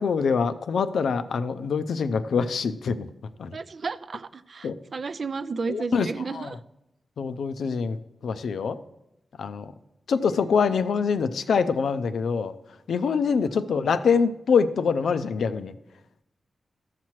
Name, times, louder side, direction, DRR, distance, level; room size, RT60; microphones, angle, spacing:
voice 1, 0.0-3.1 3.4-3.6 4.6-4.8 5.7-6.1 6.3-6.5 7.2-8.0 8.2-8.8 9.4-9.7 10.1-12.5 12.9-15.7, left 5 dB, 85° left, 11 dB, 0.4 m, -24 dB
voice 2, 3.5-6.6 10.8-10.9 13.5-13.9, right 4 dB, 60° right, 14 dB, 0.3 m, -33 dB
14.0 x 5.8 x 3.1 m, 0.88 s
cardioid pair, 60°, 0 cm